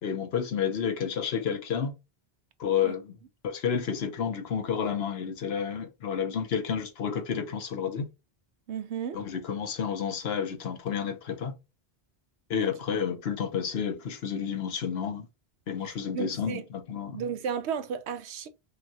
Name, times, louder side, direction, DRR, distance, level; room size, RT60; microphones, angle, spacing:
voice 1, 0.0-1.9 2.6-3.2 3.4-8.1 9.1-11.5 12.5-15.3 15.7-17.2, left 7 dB, 70° left, 1.0 m, -30 dB
voice 2, 8.7-9.2 15.8-16.6 17.1-18.5, right 7 dB, 85° right, 0.9 m, -34 dB
5.3 x 2.3 x 2.8 m
omnidirectional pair, 1.1 m